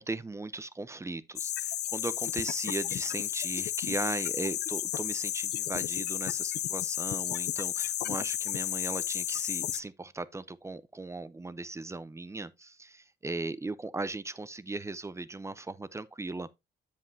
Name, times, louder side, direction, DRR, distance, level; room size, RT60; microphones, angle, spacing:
voice 1, 0.0-16.5, right 3 dB, 15° right, 0.6 m, -38 dB
sound 1, 1.4-9.8, left 12 dB, 60° left, 0.4 m, -32 dB
7.6 x 7.5 x 2.7 m
cardioid pair, 90°, 20 cm